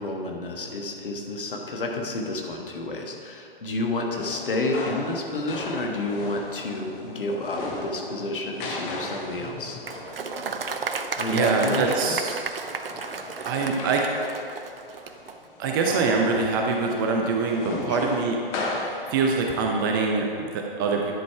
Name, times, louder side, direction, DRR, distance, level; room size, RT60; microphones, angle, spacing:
voice 1, 0.0-9.8 11.2-12.2 17.9-18.1, left 2 dB, 65° left, 2 dB, 1.4 m, -30 dB
sound 1, 4.2-19.7, left 2 dB, 20° left, 0.8 m, -37 dB
Applause, 9.8-15.4, right 5 dB, 70° right, 0.6 m, -33 dB
voice 2, 11.3-12.3 13.4-14.1 15.6-18.4 19.1-21.2, right 4 dB, 25° right, 1 dB, 0.6 m, -24 dB
10.5 x 5.2 x 4.6 m, 2.4 s
figure-of-eight pair, 130°, 29 cm